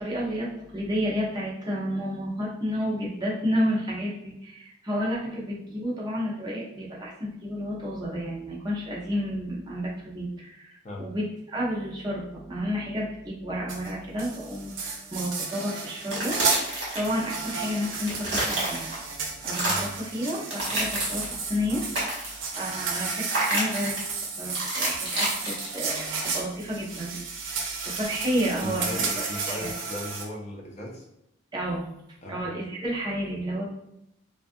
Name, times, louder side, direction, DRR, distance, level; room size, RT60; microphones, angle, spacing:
voice 1, 0.0-16.6 16.9-19.2 19.4-21.8 22.6-24.0 24.4-27.2 27.5-29.7 31.5-31.9 32.3-33.7, equal, 20° right, -5 dB, 0.5 m, -31 dB
sound 1, 13.7-13.9 14.2-16.6 17.0-30.3, right 4 dB, 85° right, 0.5 m, -33 dB
sound 2, 15.9-17.5 17.8-19.1 19.4-20.0 20.4-21.4 21.7-22.5 23.3-24.1 24.5-26.2, right 1 dB, 60° right, 1.0 m, -29 dB
voice 2, 28.6-31.0 32.2-32.4, left 1 dB, 35° left, -1 dB, 0.5 m, -37 dB
2.5 x 2.3 x 2.5 m, 0.80 s
head